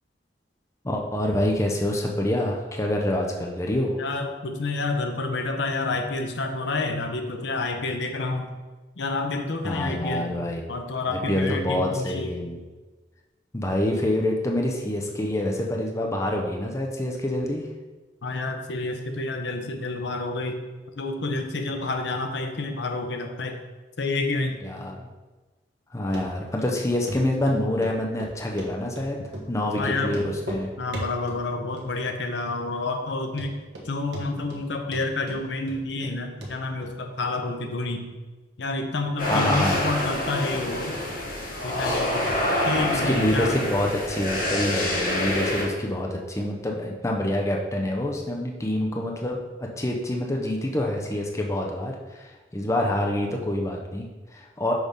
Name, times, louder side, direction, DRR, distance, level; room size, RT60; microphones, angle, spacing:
voice 1, 0.8-4.0 9.6-10.6 11.1-12.6 13.5-17.6 24.6-25.1 25.9-29.2 29.5-30.7 39.2-39.8 42.9-54.7, left 1 dB, 15° left, 0 dB, 0.6 m, -26 dB
voice 2, 4.0-8.5 9.0-10.3 10.7-12.3 18.2-20.6 21.0-23.6 24.0-24.6 29.8-30.3 30.8-33.6 33.8-38.1 38.6-40.9 41.6-43.6, left 3 dB, 70° left, 5 dB, 0.7 m, -29 dB
Run, 26.1-26.2 26.6-26.7 27.1-27.2 27.5-27.9 28.2-29.1 29.3-29.5 29.7-29.8 30.1-30.6 30.9-31.4 31.8-32.2 32.5-32.6 33.0-33.1 33.4-33.9 34.1-34.6 34.9-36.1 36.4-36.5 36.8-36.9, equal, 70° right, 1.2 m, -36 dB
sound 1, 39.2-45.6, left 1 dB, 50° left, 1.7 m, -27 dB
6.3 x 3.5 x 5.2 m, 1.2 s
head